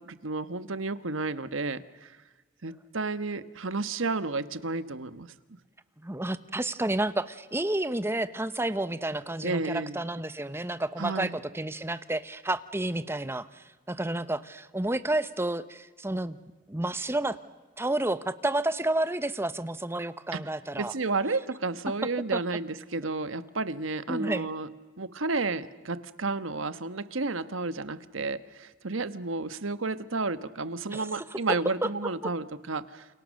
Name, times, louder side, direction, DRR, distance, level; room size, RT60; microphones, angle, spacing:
voice 1, 0.1-2.1 2.6-5.3 9.4-10.0 11.0-11.4 20.3-20.4 20.8-24.7 25.0-33.1, right 3 dB, 80° right, 13 dB, 1.3 m, -32 dB
voice 2, 6.0-16.4 16.7-17.4 17.8-20.9 22.3-22.4 24.1-24.5 30.9-31.4 31.8-31.9 32.2-32.3, right 1 dB, 10° right, 13 dB, 0.9 m, -30 dB
29.5 x 29.0 x 6.5 m, 1.3 s
head